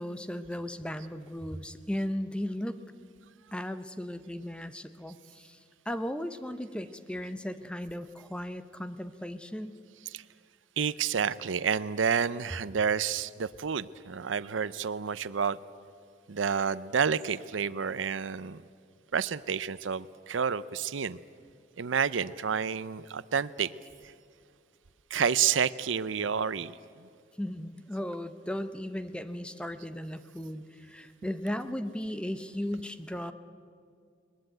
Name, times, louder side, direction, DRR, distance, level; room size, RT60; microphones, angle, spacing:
voice 1, 0.0-2.8 3.5-5.6 5.9-9.8 27.4-33.3, left 1 dB, 5° left, 11 dB, 0.8 m, -36 dB
voice 2, 10.8-15.6 16.3-18.6 19.1-21.2 21.8-23.7 25.1-27.1, right 6 dB, 90° right, 17 dB, 0.6 m, -29 dB
21.0 x 20.5 x 9.1 m, 2.3 s
head